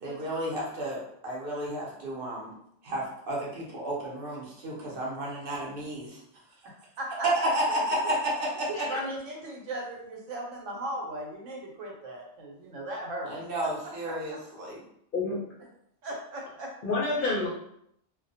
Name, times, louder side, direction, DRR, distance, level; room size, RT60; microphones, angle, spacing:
voice 1, 0.0-2.5 2.8-6.2 7.3-8.7 13.3-14.8, equal, 55° right, -3 dB, 0.7 m, -32 dB
voice 2, 6.6-7.3 7.7-8.0 8.7-13.3 13.8-14.4 16.0-16.7, right 1 dB, 80° right, -1 dB, 1.0 m, -38 dB
voice 3, 16.8-17.5, left 3 dB, 55° left, -6 dB, 0.6 m, -28 dB
2.3 x 2.1 x 2.6 m, 0.74 s
omnidirectional pair, 1.3 m